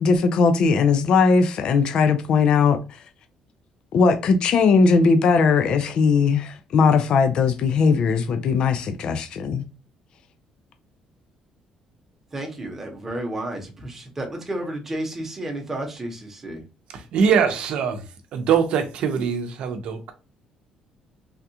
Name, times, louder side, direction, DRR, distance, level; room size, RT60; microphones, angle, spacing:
voice 1, 0.0-3.0 3.9-9.7, left 5 dB, 50° left, 0.4 m, -19 dB
voice 2, 12.3-16.6, right 1 dB, 15° right, 0.9 m, -31 dB
voice 3, 16.9-18.1 18.3-20.1, right 7 dB, 65° right, 0.6 m, -22 dB
3.4 x 2.3 x 2.8 m
cardioid pair, 165°, 2 cm